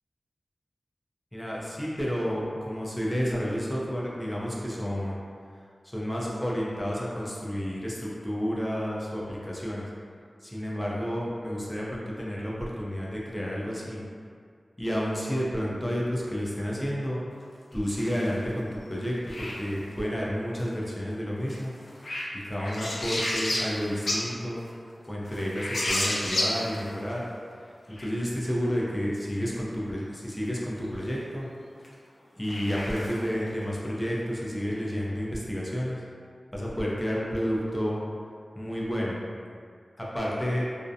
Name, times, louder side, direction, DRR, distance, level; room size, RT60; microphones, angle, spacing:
voice 1, 1.3-5.3 5.8-9.9 10.4-14.0 14.8-17.2 17.7-21.7 22.5-24.6 25.1-27.2 28.0-31.5 32.4-36.0 36.5-38.0 38.6-39.2 40.0-40.7, equal, 15° left, -5 dB, 0.5 m, -30 dB
sound 1, 17.7-18.4 19.3-19.9 21.5-24.3 24.6-24.7 25.3-27.1 27.9-28.1 31.8-31.9 32.4-33.5, left 1 dB, 70° left, 0.4 m, -31 dB
2.5 x 2.1 x 2.6 m, 2.1 s
wide cardioid pair, 75°, 0 cm